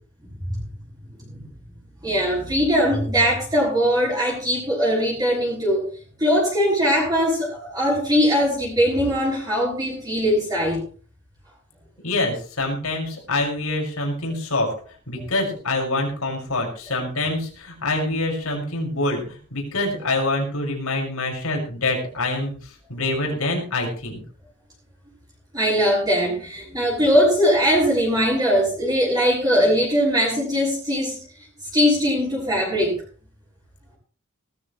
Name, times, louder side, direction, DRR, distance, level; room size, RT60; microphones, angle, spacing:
voice 1, 2.0-5.9 6.2-10.8 25.5-31.5 31.7-33.0, equal, 20° right, -5 dB, 7.2 m, -21 dB
voice 2, 12.0-14.7 15.1-24.2, left 2 dB, 80° left, 1 dB, 6.1 m, -25 dB
19.0 x 14.0 x 3.2 m, 0.40 s
head